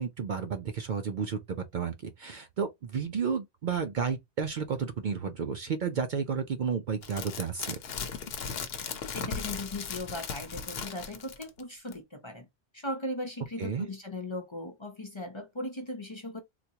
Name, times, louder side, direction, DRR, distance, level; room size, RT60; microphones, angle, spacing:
voice 1, 0.0-7.8 13.6-13.9, right 6 dB, 55° right, 0.6 m, -32 dB
sound 1, 7.0-11.6 11.9-12.0, left 6 dB, 70° left, 0.9 m, -37 dB
voice 2, 9.1-12.5 12.7-16.4, left 1 dB, 30° left, 0.6 m, -38 dB
3.9 x 2.2 x 2.8 m
omnidirectional pair, 1.1 m